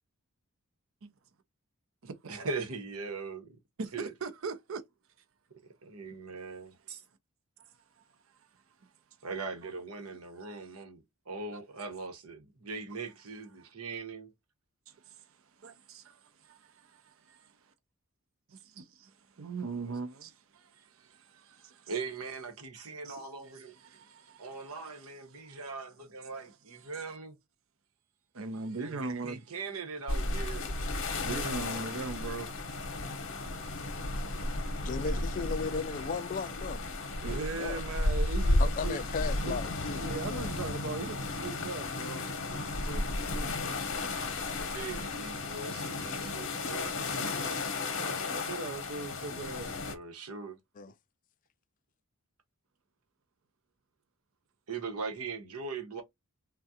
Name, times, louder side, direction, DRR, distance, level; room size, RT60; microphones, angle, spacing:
voice 1, 2.3-3.5 3.9-4.1 5.8-7.0 9.2-14.3 19.8-19.9 21.9-23.7 24.4-27.4 28.8-30.7 44.7-46.9 47.4-47.7 49.8-50.6 54.7-56.0, right 4 dB, 90° right, 1.0 m, -40 dB
voice 2, 3.8-4.8 15.0-15.1 15.6-17.5 19.4-21.9 23.0-24.7 25.4-25.6 28.3-29.4 31.2-32.5 34.7-34.8 37.2-39.0 39.4-39.5 39.9-43.6 47.8-49.8, right 4 dB, 65° right, 0.6 m, -40 dB
sound 1, 30.1-49.9, left 2 dB, 60° left, 0.8 m, -33 dB
voice 3, 34.8-36.8 37.2-37.8 38.6-40.7 50.8-50.9, left 5 dB, 35° left, 0.3 m, -36 dB
3.5 x 2.3 x 2.7 m
head